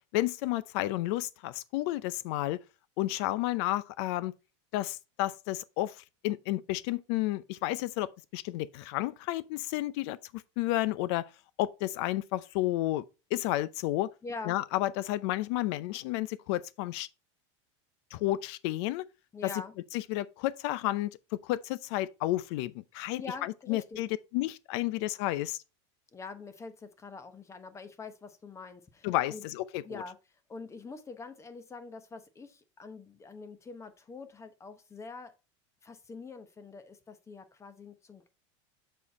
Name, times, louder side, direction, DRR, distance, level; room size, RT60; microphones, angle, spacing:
voice 1, 0.1-2.6 3.0-4.3 4.7-11.2 11.6-13.0 13.3-14.1 14.5-17.1 18.1-19.0 19.9-21.1 21.4-25.6 29.0-30.0, left 16 dB, 65° left, 0.6 m, -31 dB
voice 2, 14.2-14.6 19.3-19.7 23.1-24.0 26.1-29.4 29.8-30.2 30.5-35.3 35.8-38.3, left 4 dB, 20° left, 0.9 m, -44 dB
7.0 x 4.5 x 4.1 m
supercardioid pair, 125°, 16 cm